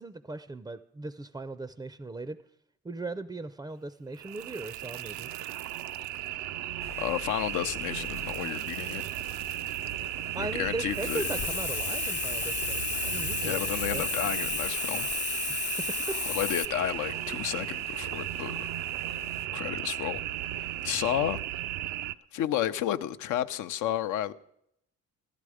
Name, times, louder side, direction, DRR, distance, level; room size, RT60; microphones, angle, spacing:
voice 1, 0.0-2.4 2.8-5.3 10.3-13.6 13.9-14.1 15.8-15.9, right 2 dB, 15° right, 0.4 m, -38 dB
sound 1, 4.1-22.1, right 13 dB, 80° right, 0.5 m, -35 dB
sound 2, 6.8-19.5, left 8 dB, 65° left, 1.0 m, -49 dB
voice 2, 7.0-9.0 10.4-11.3 13.4-15.1 16.3-18.7 19.5-20.2 20.6-21.4 22.3-24.3, left 11 dB, 85° left, 0.6 m, -32 dB
Hiss, 10.9-16.7, left 7 dB, 40° left, 0.6 m, -33 dB
15.0 x 12.5 x 4.9 m
cardioid pair, 90°, 30 cm